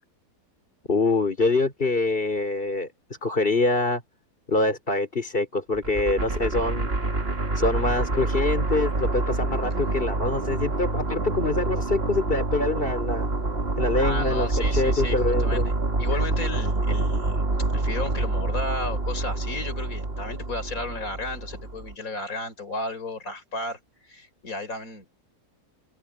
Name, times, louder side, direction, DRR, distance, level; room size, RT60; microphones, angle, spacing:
voice 1, 0.9-2.9 3.2-4.0 4.5-6.9 7.5-13.3 13.8-15.7 16.1-16.2, left 2 dB, 30° left, 4.2 m, -25 dB
sound 1, 5.7-21.9, right 2 dB, 35° right, 2.4 m, -27 dB
voice 2, 13.9-15.7 16.0-17.4 17.7-25.1, left 2 dB, 55° left, 5.3 m, -34 dB
omnidirectional pair, 1.8 m